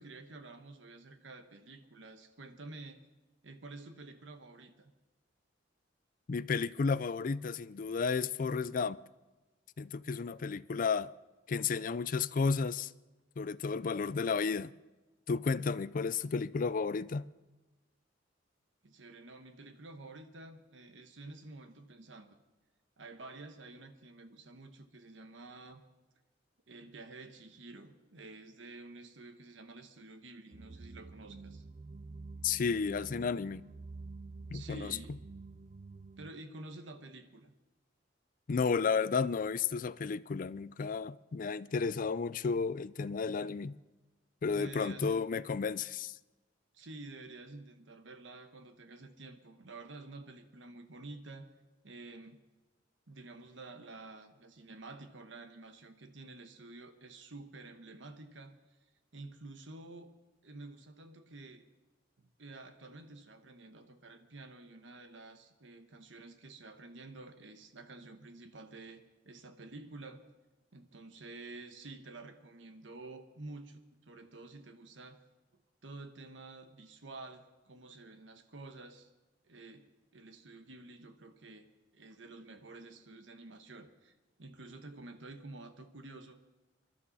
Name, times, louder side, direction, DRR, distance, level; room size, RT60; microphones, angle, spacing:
voice 1, 0.0-3.0 3.4-4.9 18.8-22.4 23.0-25.8 26.7-31.6 34.5-35.2 36.2-37.5 44.5-45.2 46.7-51.5 51.8-52.5 53.1-58.8 59.1-60.1 60.4-61.7 62.2-70.2 70.7-75.2 75.8-79.1 79.4-86.4, right 2 dB, 90° right, 1.2 m, -50 dB
voice 2, 6.3-9.0 9.8-11.1 11.5-12.9 13.4-14.7 15.3-17.2 32.4-33.6 34.5-35.0 38.5-43.8 44.4-46.2, left 5 dB, 45° left, 0.4 m, -32 dB
sound 1, 30.5-36.3, right 3 dB, 40° right, 0.4 m, -48 dB
25.0 x 12.0 x 4.1 m
head